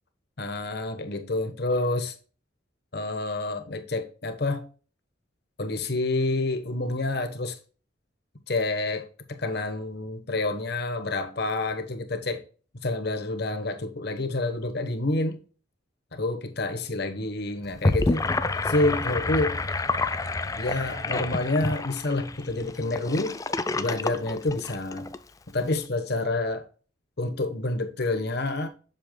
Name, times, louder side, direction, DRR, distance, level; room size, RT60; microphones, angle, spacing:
voice 1, 0.4-2.1 2.9-4.7 5.6-7.5 8.5-12.4 12.8-15.4 16.1-18.3 18.6-19.6 20.5-23.4 23.7-25.1 25.5-26.7 27.2-28.7, left 2 dB, 55° left, 1.2 m, -28 dB
Gurgling / Sink (filling or washing), 17.6-25.2, left 3 dB, 15° left, 0.3 m, -28 dB
7.7 x 7.0 x 2.2 m
head